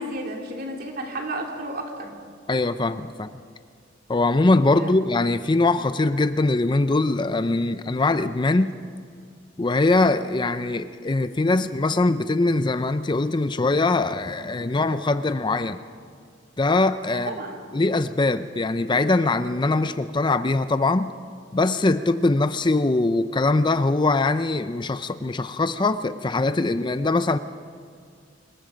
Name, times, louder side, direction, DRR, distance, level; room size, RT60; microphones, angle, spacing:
voice 1, 0.0-2.1 4.8-4.9 17.3-17.6, right 1 dB, 55° right, 1 dB, 3.3 m, -32 dB
voice 2, 2.5-3.3 4.1-8.7 9.6-15.8 16.6-17.4 17.7-21.1 21.5-27.4, left 2 dB, 25° left, 11 dB, 0.5 m, -22 dB
26.0 x 21.5 x 5.2 m, 2.2 s
head